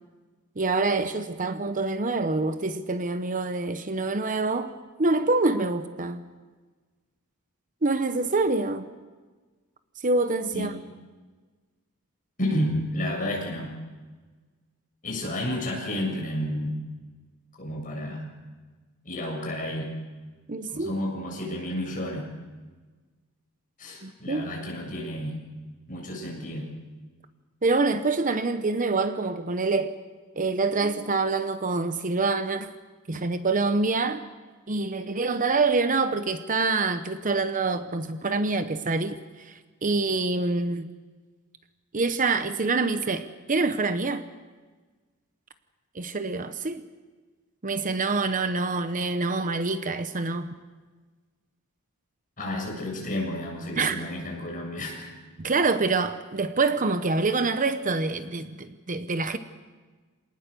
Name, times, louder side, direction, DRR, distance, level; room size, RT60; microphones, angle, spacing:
voice 1, 0.6-4.7 5.0-6.3 7.8-8.9 10.0-10.7 20.5-20.9 24.0-24.5 27.6-30.0 30.4-32.7 33.1-34.2 34.7-40.9 41.9-44.2 45.9-46.8 47.6-50.5 53.8-54.0 55.4-59.4, right 3 dB, 35° right, 10 dB, 0.9 m, -26 dB
voice 2, 12.4-13.7 15.0-16.7 17.6-18.3 19.0-19.9 20.7-22.3 23.8-25.4 25.9-26.6 52.4-55.2, left 1 dB, 40° left, 0 dB, 7.5 m, -31 dB
26.5 x 19.0 x 6.8 m, 1.4 s
head